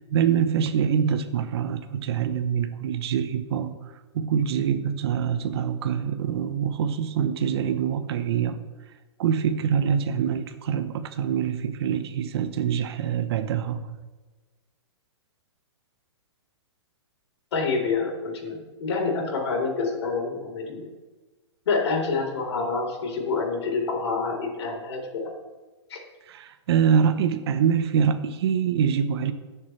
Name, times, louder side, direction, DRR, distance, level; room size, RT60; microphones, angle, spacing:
voice 1, 0.1-3.8 4.1-8.6 9.2-13.8 26.3-29.3, right 8 dB, 60° right, 9 dB, 1.0 m, -25 dB
voice 2, 17.5-20.9 21.7-25.3 25.9-26.0, left 4 dB, 70° left, 0 dB, 3.9 m, -27 dB
21.0 x 7.2 x 3.3 m, 1.2 s
hypercardioid pair, 125°, 15 cm